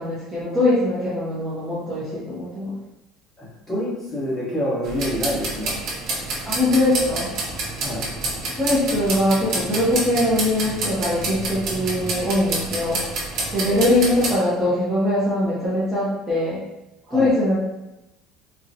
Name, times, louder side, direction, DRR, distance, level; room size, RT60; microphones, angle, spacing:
voice 1, 0.0-2.8 6.4-7.3 8.6-13.0 13.5-16.6 17.1-17.6, left 1 dB, 10° right, -10 dB, 0.6 m, -22 dB
voice 2, 3.4-5.8 7.8-8.1 13.7-14.2 17.0-17.3, equal, 15° left, -9 dB, 1.1 m, -27 dB
sound 1, 4.8-14.3, right 2 dB, 50° right, 0.7 m, -28 dB
3.8 x 2.2 x 2.7 m, 0.95 s
cardioid pair, 175°, 0 cm